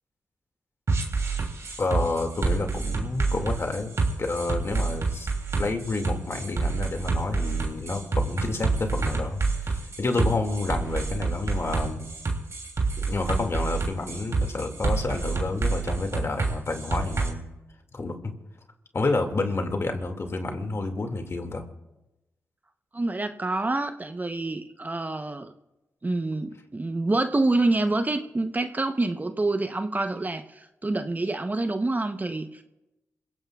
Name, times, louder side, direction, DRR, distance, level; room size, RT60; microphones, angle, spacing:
sound 1, 0.9-17.3, right 4 dB, 55° right, 3.0 m, -27 dB
voice 1, 1.8-3.9 4.2-5.3 5.6-12.1 13.0-17.4 17.9-18.3 18.9-21.6, left 3 dB, 50° left, 4 dB, 2.2 m, -29 dB
voice 2, 22.9-25.5 26.0-32.6, right 2 dB, 30° right, 8 dB, 0.9 m, -27 dB
27.0 x 16.5 x 2.4 m, 0.99 s
supercardioid pair, 45°, 6 cm